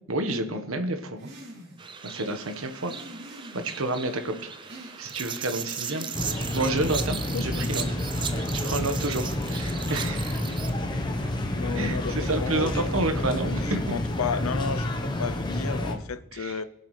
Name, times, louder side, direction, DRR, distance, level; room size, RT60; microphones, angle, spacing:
voice 1, 0.1-1.3 2.0-2.9 3.5-4.3 5.0-7.8 8.6-10.5 11.7-13.8 16.3-16.6, right 2 dB, 80° right, 1.3 m, -29 dB
sound 1, 1.2-1.9 2.8-3.9 4.6-5.3 5.8-6.6, equal, 50° right, 3.0 m, -45 dB
sound 2, 1.8-10.7, right 7 dB, 20° right, 0.5 m, -37 dB
sound 3, 6.1-15.9, left 1 dB, 20° left, 1.0 m, -29 dB
voice 2, 7.3-7.7 11.5-16.6, left 5 dB, 85° left, 0.6 m, -33 dB
20.5 x 7.1 x 3.3 m
head